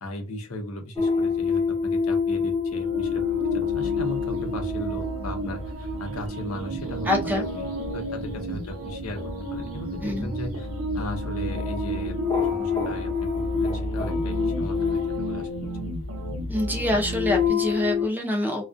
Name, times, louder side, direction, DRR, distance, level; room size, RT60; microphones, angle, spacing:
voice 1, 0.0-3.2 3.5-9.2 9.5-10.7 10.9-15.5, left 1 dB, 90° left, 4 dB, 0.7 m, -37 dB
sound 1, 1.0-16.1 16.7-18.1, left 5 dB, 20° left, 0.8 m, -28 dB
sound 2, 2.7-17.5, right 1 dB, 80° right, 0.8 m, -33 dB
voice 2, 7.1-7.4 10.0-10.3 16.5-18.7, left 1 dB, 10° right, 2 dB, 0.5 m, -25 dB
2.3 x 2.2 x 2.5 m, 0.30 s
head